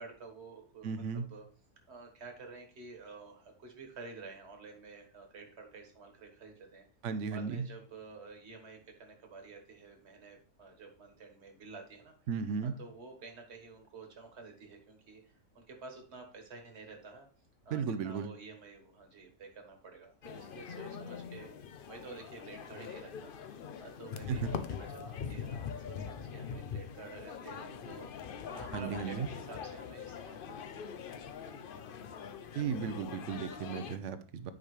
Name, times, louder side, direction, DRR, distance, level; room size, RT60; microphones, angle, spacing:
voice 1, 0.0-1.4 1.9-6.8 7.3-12.1 12.6-17.3 17.6-28.2 28.5-30.7 31.4-32.1, right 4 dB, 45° right, 3 dB, 1.6 m, -50 dB
voice 2, 0.8-1.3 7.0-7.7 12.3-12.7 17.7-18.3 24.3-24.5 28.7-29.3 32.5-34.5, right 6 dB, 60° right, 11 dB, 0.9 m, -35 dB
sound 1, 20.2-34.0, left 7 dB, 85° left, 0.4 m, -43 dB
9.5 x 5.1 x 3.2 m, 0.39 s
omnidirectional pair, 1.6 m